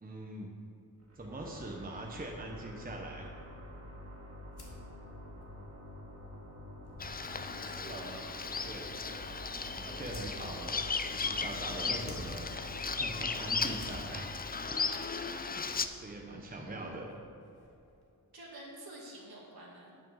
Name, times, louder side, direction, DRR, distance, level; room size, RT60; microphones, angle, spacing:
voice 1, 0.0-0.5 1.1-3.3 7.6-8.3 8.6-8.9 9.8-10.7 11.1-12.5 12.8-14.3 15.3-17.1, right 2 dB, 25° right, 0 dB, 0.8 m, -43 dB
sound 1, 1.0-17.2, left 1 dB, 40° right, 2.0 m, -48 dB
sound 2, 4.5-18.1, left 1 dB, 80° left, 1.8 m, -57 dB
Bird vocalization bird call bird song, 7.0-15.9, left 4 dB, 25° left, 0.3 m, -36 dB
voice 2, 7.3-8.2 11.2-11.5 16.1-17.0 18.3-19.9, right 1 dB, 70° right, -3 dB, 1.9 m, -51 dB
8.5 x 6.3 x 6.2 m, 2.9 s
wide cardioid pair, 115°, 38 cm